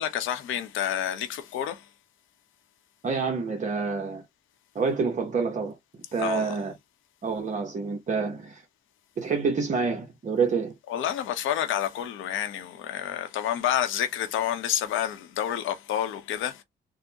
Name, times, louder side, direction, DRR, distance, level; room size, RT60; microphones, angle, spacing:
voice 1, 0.0-1.9 6.2-6.6 10.9-16.6, left 10 dB, 85° left, 0.8 m, -29 dB
voice 2, 3.0-4.2 4.7-5.8 6.1-6.7 7.2-8.6 9.2-10.7, right 5 dB, 40° right, 0.8 m, -27 dB
3.7 x 2.1 x 2.7 m
cardioid pair, 90°, 20 cm